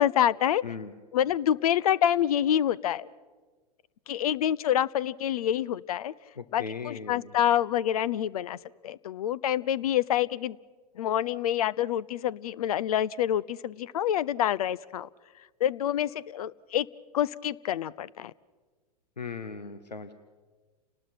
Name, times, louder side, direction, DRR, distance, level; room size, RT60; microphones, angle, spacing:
voice 1, 0.0-0.6 1.1-3.1 4.1-6.1 6.5-8.6 8.8-10.6 11.0-15.1 15.6-16.9 17.1-18.3, left 10 dB, 60° left, 22 dB, 0.7 m, -27 dB
voice 2, 0.6-0.9 6.4-7.3 19.2-20.1, left 5 dB, 90° left, 11 dB, 1.2 m, -38 dB
30.0 x 19.5 x 5.9 m, 1.4 s
figure-of-eight pair, 100°, 21 cm